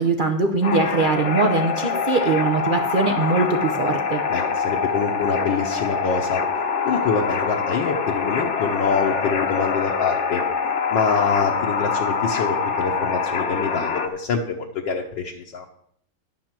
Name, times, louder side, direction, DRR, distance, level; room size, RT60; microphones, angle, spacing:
voice 1, 0.0-4.2, right 3 dB, 75° right, 5 dB, 0.4 m, -21 dB
sound 1, 0.6-14.1, left 5 dB, 45° left, 1.0 m, -25 dB
voice 2, 4.3-6.4 6.9-10.4 10.9-15.7, left 5 dB, 65° left, 0 dB, 1.6 m, -25 dB
11.0 x 6.2 x 7.4 m, 0.67 s
omnidirectional pair, 2.2 m